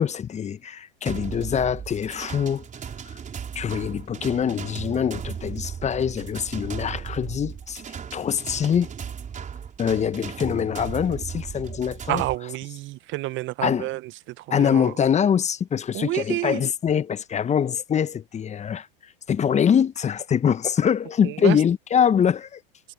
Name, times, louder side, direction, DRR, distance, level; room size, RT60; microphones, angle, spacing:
voice 1, 0.0-2.7 3.0-3.2 3.5-7.8 8.1-8.9 9.8-12.2 13.6-13.9 14.5-22.6, left 8 dB, 25° left, 1.1 m, -24 dB
sound 1, 1.1-12.4, right 7 dB, 25° right, 4.7 m, -36 dB
voice 2, 12.1-14.0 14.6-14.9 15.9-16.6 21.4-21.6, right 17 dB, 40° right, 1.0 m, -28 dB
hypercardioid pair, 90°, 29 cm